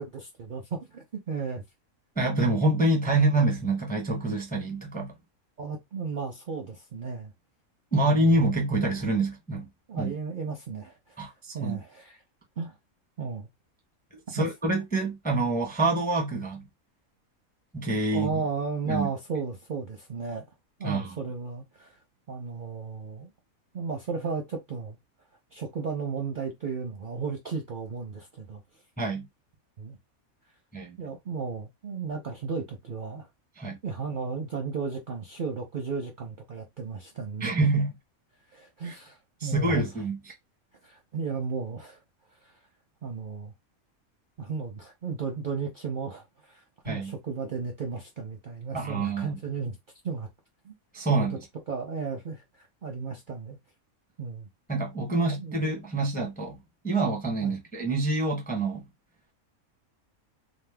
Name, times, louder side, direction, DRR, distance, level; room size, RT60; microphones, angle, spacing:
voice 1, 0.0-1.6 5.6-7.3 8.0-8.3 9.9-11.2 11.5-12.2 12.6-12.7 13.2-13.5 14.3-14.5 18.1-20.5 20.8-22.0 22.3-23.3 23.7-25.0 25.5-28.6 29.8-30.0 31.0-33.3 33.8-37.5 38.5-39.8 40.8-42.0 42.4-42.5 43.0-43.5 44.4-49.8 50.0-50.3 50.6-50.7 51.1-51.4 51.7-53.6 54.2-54.5 55.1-55.6 57.4-57.5, right 5 dB, 55° right, 0.5 m, -34 dB
voice 2, 2.2-5.1 7.9-9.7 10.0-10.1 11.2-11.8 14.3-16.6 17.7-18.4 18.9-19.1 20.8-21.2 29.0-29.2 30.7-31.0 33.6-33.8 37.4-37.9 38.8-38.9 39.4-40.3 46.9-47.1 48.7-49.3 50.9-51.4 54.7-56.6 56.8-58.8, right 2 dB, 10° left, 0.5 m, -26 dB
2.7 x 2.1 x 3.3 m
omnidirectional pair, 1.5 m